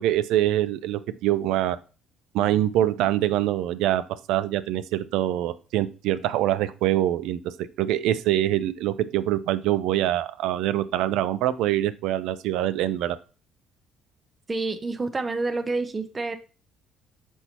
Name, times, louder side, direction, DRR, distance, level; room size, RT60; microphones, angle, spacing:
voice 1, 0.0-1.8 2.3-4.0 4.3-7.4 7.8-13.2, right 13 dB, 85° right, 13 dB, 0.5 m, -24 dB
voice 2, 14.5-16.4, right 3 dB, 20° right, 7 dB, 0.6 m, -28 dB
6.3 x 5.5 x 2.9 m, 0.34 s
cardioid pair, 110°, 0 cm